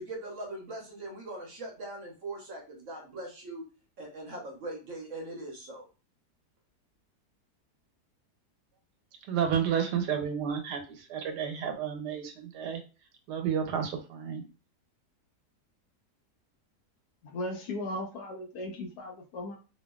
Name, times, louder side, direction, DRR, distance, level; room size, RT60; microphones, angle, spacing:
voice 1, 0.0-3.6 4.0-5.9, right 2 dB, 60° right, 0 dB, 0.9 m, -41 dB
voice 2, 9.2-12.8 13.3-14.4, right 8 dB, 85° right, 6 dB, 1.2 m, -31 dB
voice 3, 17.3-19.6, left 1 dB, 75° left, 2 dB, 1.2 m, -37 dB
2.9 x 2.7 x 2.2 m, 0.33 s
omnidirectional pair, 1.8 m